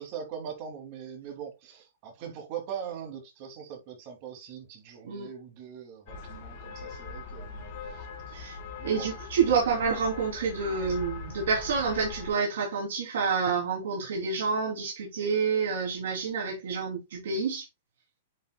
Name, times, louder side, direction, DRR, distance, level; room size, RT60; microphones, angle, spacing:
voice 1, 0.0-8.4 8.8-9.2 9.5-9.6, right 8 dB, 35° right, 2.5 m, -41 dB
sound 1, 6.1-12.3, left 4 dB, 40° left, 2.1 m, -41 dB
voice 2, 8.8-17.7, right 5 dB, 70° right, 2.9 m, -28 dB
9.1 x 5.6 x 2.2 m
supercardioid pair, 175°, 0 cm